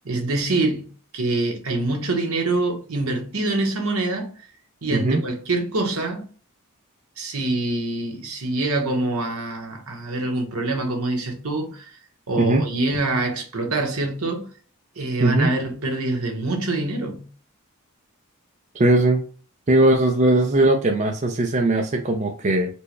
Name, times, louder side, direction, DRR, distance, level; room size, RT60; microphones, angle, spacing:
voice 1, 0.0-4.3 4.8-6.2 7.2-11.9 12.3-14.5 15.0-17.3, right 2 dB, 75° right, 1.0 m, -25 dB
voice 2, 18.8-19.3 19.7-22.7, right 2 dB, 30° right, 0.4 m, -19 dB
4.3 x 2.2 x 3.1 m
head